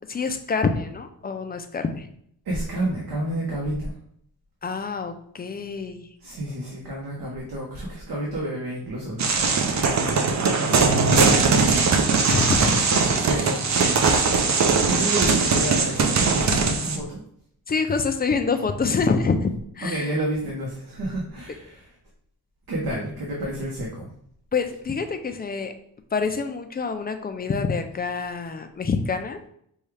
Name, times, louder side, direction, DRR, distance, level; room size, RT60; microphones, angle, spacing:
voice 1, 0.1-2.1 4.6-6.1 12.3-12.8 17.7-20.1 24.5-25.7 26.1-29.4, left 4 dB, 25° left, 7 dB, 0.4 m, -26 dB
voice 2, 2.4-3.9 6.2-12.1 13.2-17.2 19.8-21.9 22.7-24.1, right 1 dB, 75° right, -4 dB, 1.1 m, -31 dB
sound 1, 9.2-17.0, right 4 dB, 50° right, 0.6 m, -20 dB
5.3 x 2.3 x 3.2 m, 0.68 s
wide cardioid pair, 130°, 37 cm